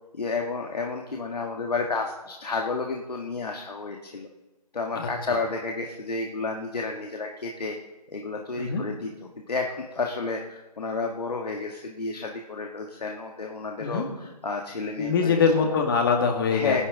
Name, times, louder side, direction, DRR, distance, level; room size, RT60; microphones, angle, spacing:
voice 1, 0.1-4.3 4.7-7.7 8.1-9.1 9.5-15.4 16.5-16.8, left 3 dB, 70° left, 2 dB, 1.7 m, -31 dB
voice 2, 15.0-16.8, left 5 dB, 35° left, 3 dB, 2.2 m, -23 dB
19.0 x 11.0 x 3.9 m, 1.1 s
figure-of-eight pair, 160°, 21 cm